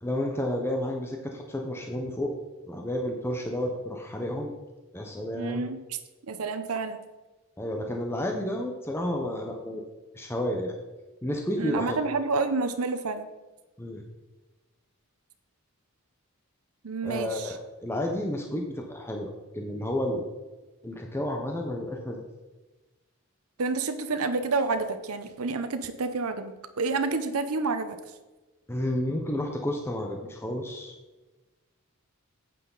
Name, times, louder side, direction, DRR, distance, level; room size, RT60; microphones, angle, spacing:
voice 1, 0.0-2.3 2.7-4.5 4.9-5.7 7.6-9.8 10.1-10.7 11.2-12.0 13.8-14.0 17.0-20.2 20.8-22.2 28.7-30.9, left 1 dB, 10° left, 1 dB, 0.8 m, -31 dB
voice 2, 5.3-6.0 6.3-7.0 11.6-13.3 16.8-17.6 23.6-28.0, right 4 dB, 85° right, 9 dB, 0.7 m, -29 dB
9.3 x 8.4 x 4.0 m, 1.2 s
head